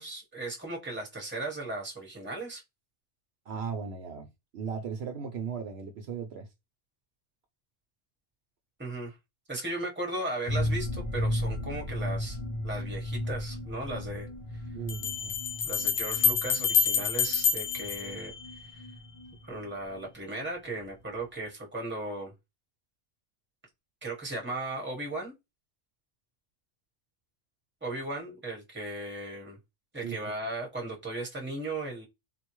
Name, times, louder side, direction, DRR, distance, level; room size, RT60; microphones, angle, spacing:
voice 1, 0.0-2.6 8.8-9.1 9.5-12.4 12.6-14.3 15.6-18.3 18.7-18.8 19.4-22.3 24.0-25.3 27.8-29.6 29.9-32.0, right 2 dB, 10° right, 1.0 m, -36 dB
voice 2, 3.5-6.5 14.7-15.4 30.0-30.2, right 6 dB, 70° right, 0.8 m, -37 dB
sound 1, 10.5-20.1 20.3-20.4 20.7-20.8, left 1 dB, 40° left, 0.5 m, -35 dB
Bell, 13.3-13.4 14.9-18.8, left 6 dB, 70° left, 1.0 m, -28 dB
3.9 x 2.2 x 3.0 m
omnidirectional pair, 1.2 m